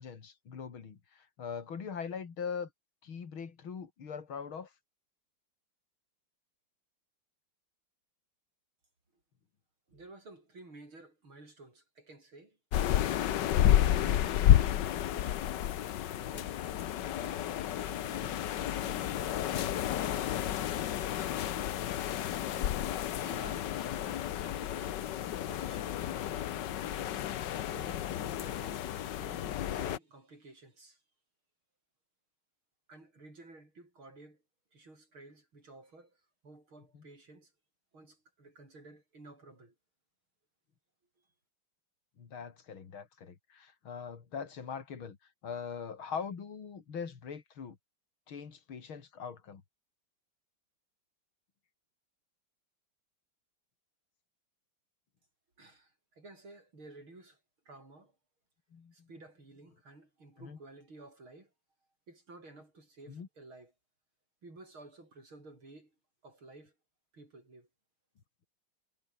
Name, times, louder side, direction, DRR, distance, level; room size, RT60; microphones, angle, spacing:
voice 1, 0.0-2.7 3.0-4.7 14.0-14.1 23.5-23.6 36.9-37.1 42.2-45.2 45.4-47.8 48.3-49.6 58.7-59.1 60.4-60.6 63.1-63.3, left 6 dB, 85° left, 3.4 m, -42 dB
voice 2, 9.9-12.6 13.7-15.4 16.1-16.7 17.0-17.5 17.8-21.0 23.2-25.0 25.4-26.4 27.5-31.0 32.9-34.4 34.7-37.5 37.9-39.7 55.6-57.4 57.7-58.2 58.9-61.5 62.1-63.7 64.4-66.0 66.2-66.7 67.1-67.7, right 2 dB, 80° right, 8.7 m, -54 dB
sound 1, 12.7-30.0, left 11 dB, 65° left, 1.5 m, -31 dB
omnidirectional pair, 2.2 m